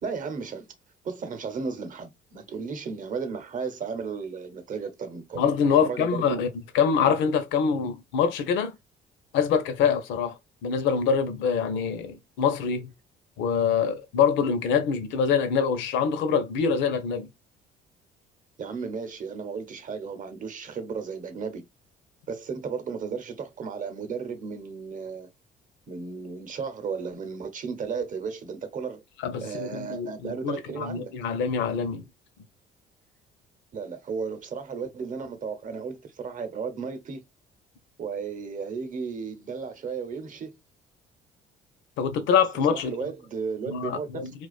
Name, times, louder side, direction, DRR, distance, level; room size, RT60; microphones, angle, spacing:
voice 1, 0.0-0.6 1.0-6.4 18.6-21.6 22.3-25.3 25.9-29.0 29.4-31.1 33.7-37.2 38.0-40.6 42.7-44.1, right 5 dB, 45° right, 0.8 m, -34 dB
voice 2, 5.4-6.5 6.7-8.7 9.3-10.3 10.6-12.9 13.4-17.3 29.2-32.0 42.0-43.0 43.7-44.3, left 6 dB, 80° left, 0.6 m, -25 dB
2.4 x 2.3 x 2.3 m
supercardioid pair, 80°, 19 cm